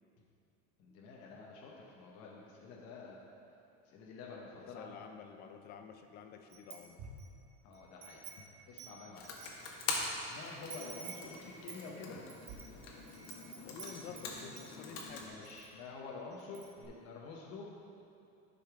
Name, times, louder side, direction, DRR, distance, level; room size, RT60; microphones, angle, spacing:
voice 1, 0.8-3.2 3.9-5.0 7.6-9.3 10.3-12.2 15.2-17.7, left 4 dB, 45° left, -3 dB, 1.0 m, -48 dB
voice 2, 4.6-7.0 13.6-15.3, left 7 dB, 30° left, 6 dB, 0.4 m, -50 dB
Wind chime, 6.5-7.3 7.7-10.0 10.3-10.4 10.7-14.7 15.0-15.7 16.0-16.1 16.4-16.8, right 6 dB, 60° right, 1.4 m, -50 dB
Computer keyboard, 9.1-15.3, left 4 dB, 80° left, 1.3 m, -43 dB
12.0 x 5.6 x 3.4 m, 2.7 s
cardioid pair, 175°, 34 cm